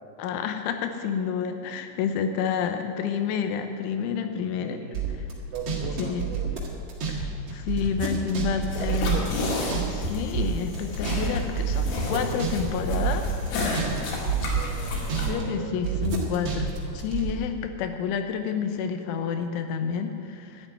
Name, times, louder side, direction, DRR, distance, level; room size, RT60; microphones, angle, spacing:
voice 1, 0.2-4.8 6.0-6.3 7.1-9.2 9.9-13.4 15.3-20.7, left 7 dB, 80° left, 7 dB, 3.3 m, -29 dB
voice 2, 4.6-5.0 5.5-6.6 8.8-9.3 14.5-16.1, right 6 dB, 85° right, 1 dB, 2.2 m, -37 dB
sound 1, 4.9-7.2 7.5-10.1 10.3-14.0 14.3-15.4 15.8-17.3, right 7 dB, 55° right, 1.7 m, -28 dB
sound 2, 8.7-15.3, left 2 dB, 65° left, 4.0 m, -31 dB
12.5 x 7.8 x 9.6 m, 2.4 s
omnidirectional pair, 5.6 m